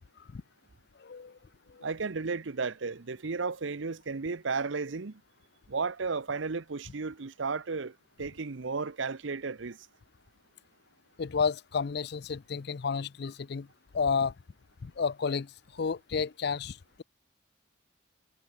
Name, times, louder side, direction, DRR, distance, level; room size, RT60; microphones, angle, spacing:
voice 1, 1.0-1.4 1.7-1.9 11.2-13.7 13.9-14.3 14.8-17.0, left 5 dB, 55° left, 0.4 m, -31 dB
voice 2, 1.8-5.2 5.7-9.8, right 4 dB, 70° right, 0.8 m, -34 dB
head